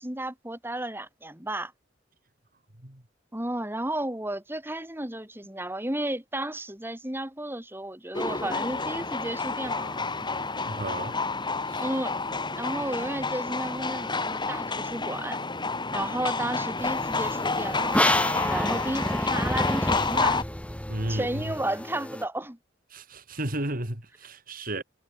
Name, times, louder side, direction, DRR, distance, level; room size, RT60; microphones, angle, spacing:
voice 1, 0.0-1.7 3.3-10.0 11.8-12.2 12.5-15.4 15.9-18.1 18.5-20.4 21.1-22.6, right 1 dB, 10° right, 3.6 m, -33 dB
sound 1, 8.1-20.4, left 3 dB, 25° left, 4.8 m, -30 dB
voice 2, 10.7-11.2 11.7-11.9 20.9-21.6 22.9-24.8, right 1 dB, 50° right, 3.9 m, -33 dB
sound 2, 16.8-22.2, left 1 dB, 5° left, 2.5 m, -29 dB
head